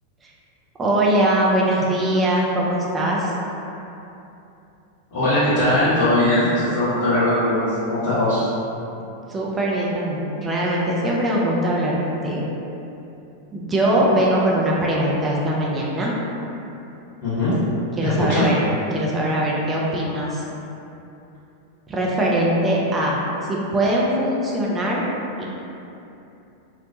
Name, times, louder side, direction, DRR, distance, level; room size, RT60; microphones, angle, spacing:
voice 1, 0.8-3.3 9.3-12.5 13.5-16.1 18.0-18.6 18.9-20.4 21.9-23.2 23.5-25.0 25.4-25.5, right 1 dB, 20° right, -4 dB, 0.4 m, -21 dB
voice 2, 5.1-8.4 17.2-17.5 18.0-18.4, left 1 dB, 50° left, -17 dB, 1.1 m, -20 dB
2.9 x 2.1 x 2.6 m, 2.8 s
figure-of-eight pair, 90°, 0 cm